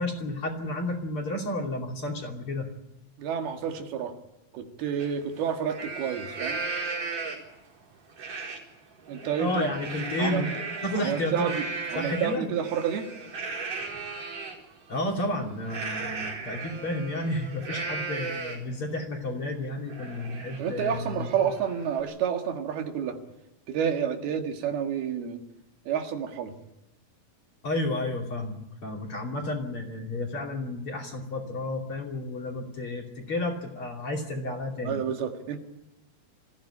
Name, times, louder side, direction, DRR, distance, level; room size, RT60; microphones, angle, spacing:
voice 1, 0.0-2.7 9.4-10.5 10.8-11.5 11.9-12.5 14.9-21.3 27.6-35.0, left 1 dB, 40° left, 1 dB, 3.4 m, -31 dB
voice 2, 3.2-4.1 4.5-6.6 9.1-9.7 10.2-10.5 11.0-11.7 11.9-13.1 20.6-23.2 23.7-25.4 25.9-26.5 34.8-35.6, right 8 dB, 85° right, 4 dB, 3.8 m, -29 dB
Livestock farm animals working animals, 5.0-5.1 5.5-7.6 8.2-8.6 9.0-14.6 15.7-18.8 19.2-19.3 19.6-22.0, right 4 dB, 60° right, 6.2 m, -36 dB
24.0 x 15.5 x 10.0 m, 0.92 s
omnidirectional pair, 4.3 m